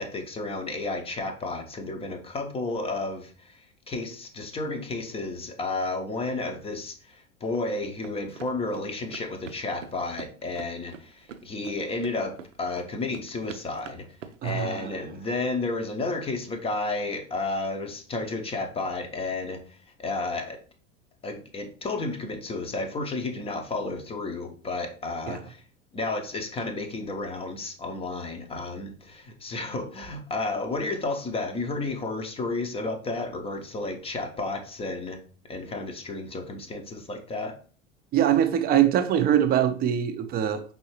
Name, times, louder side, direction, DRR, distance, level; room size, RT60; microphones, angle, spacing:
voice 1, 0.0-14.1 14.4-20.6 21.2-25.6 25.9-35.2 35.4-37.6, left 3 dB, 15° left, 6 dB, 0.6 m, -32 dB
sound 1, 8.0-14.7, right 7 dB, 80° right, 0.6 m, -45 dB
voice 2, 14.4-14.9 25.3-25.4 38.1-40.6, right 10 dB, 25° right, 9 dB, 0.5 m, -23 dB
5.3 x 3.3 x 2.9 m, 0.41 s
figure-of-eight pair, 85°, 38 cm